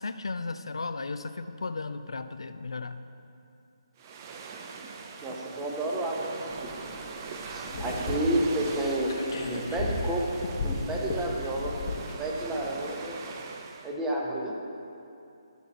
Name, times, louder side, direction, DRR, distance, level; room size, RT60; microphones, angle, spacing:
voice 1, 0.0-3.0, left 3 dB, 75° left, 9 dB, 0.4 m, -35 dB
sound 1, 4.0-13.9, right 4 dB, 30° right, 0.6 m, -41 dB
voice 2, 5.2-6.3 7.5-9.1 9.5-13.2 13.8-14.6, right 1 dB, 10° right, -2 dB, 1.0 m, -30 dB
sound 2, 6.5-12.1, left 2 dB, 45° left, 1.1 m, -35 dB
11.0 x 4.0 x 7.1 m, 2.6 s
figure-of-eight pair, 145°, 3 cm